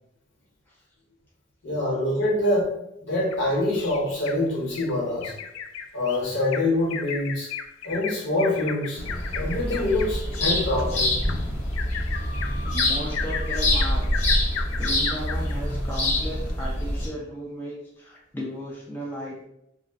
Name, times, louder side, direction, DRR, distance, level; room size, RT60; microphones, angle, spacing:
voice 1, 1.6-2.7 3.0-5.3 5.9-7.5 7.8-9.0 9.3-11.1, left 1 dB, 65° left, -4 dB, 1.1 m, -25 dB
Bird vocalization bird call bird song, 3.3-4.4 4.7-4.9 5.2-15.6 16.0-16.1 16.5-16.6, left 7 dB, 80° left, 0.3 m, -35 dB
sound 1, 9.0-17.1, left 1 dB, 35° left, 0.8 m, -26 dB
voice 2, 12.6-14.1 14.8-19.4, equal, 10° left, -5 dB, 0.4 m, -35 dB
2.4 x 2.1 x 3.5 m, 0.81 s
head